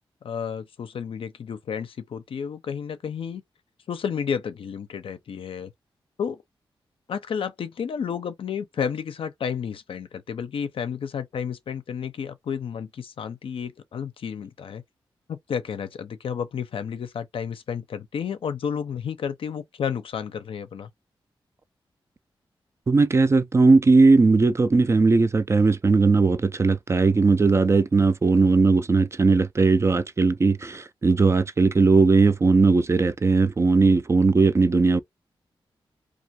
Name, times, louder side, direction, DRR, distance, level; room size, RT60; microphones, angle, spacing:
voice 1, 0.2-3.4 3.9-5.7 6.2-6.4 7.1-14.8 15.3-20.9, left 7 dB, 70° left, 0.5 m, -31 dB
voice 2, 22.9-35.0, right 3 dB, 30° right, 0.3 m, -18 dB
2.3 x 2.2 x 2.8 m
cardioid pair, 60°, 10 cm